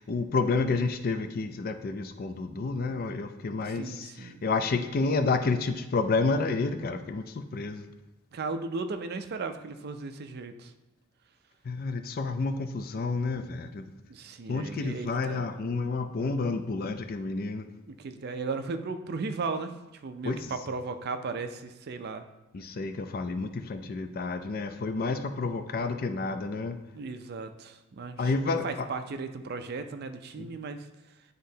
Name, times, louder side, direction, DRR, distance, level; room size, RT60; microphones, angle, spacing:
voice 1, 0.0-7.8 11.6-13.9 14.5-17.6 20.2-20.5 22.5-26.8 28.2-28.9 30.4-30.5, left 3 dB, 45° left, 8 dB, 0.4 m, -30 dB
voice 2, 3.6-4.4 8.3-10.7 14.1-15.5 17.9-19.7 20.0-22.2 26.9-30.9, right 4 dB, 50° right, 8 dB, 0.4 m, -36 dB
9.5 x 3.8 x 2.7 m, 1.0 s
head